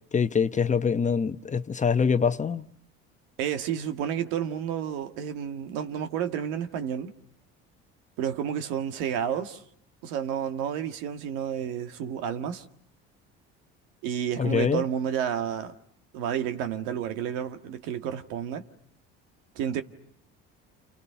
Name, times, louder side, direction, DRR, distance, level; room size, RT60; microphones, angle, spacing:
voice 1, 0.1-2.6 14.4-14.8, left 6 dB, 25° left, 1.0 m, -24 dB
voice 2, 3.4-7.1 8.2-9.6 10.0-12.6 14.0-15.7 16.1-18.6 19.5-19.8, right 9 dB, 80° right, 1.8 m, -30 dB
29.5 x 28.5 x 5.7 m
supercardioid pair, 85°, 30 cm